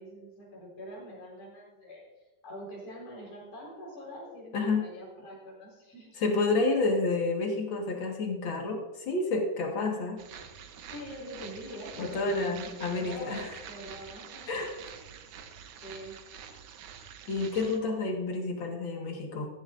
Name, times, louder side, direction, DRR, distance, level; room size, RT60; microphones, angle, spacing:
voice 1, 0.0-2.0 2.4-6.2 10.9-14.6 15.8-16.2, equal, 65° left, -3 dB, 6.1 m, -44 dB
voice 2, 4.5-4.9 6.2-10.2 12.0-13.5 14.5-14.7 17.3-19.5, left 3 dB, 45° left, 1 dB, 1.8 m, -29 dB
sound 1, 10.2-17.8, right 8 dB, 70° right, 2.1 m, -47 dB
15.5 x 14.5 x 2.6 m, 1.1 s
omnidirectional pair, 4.0 m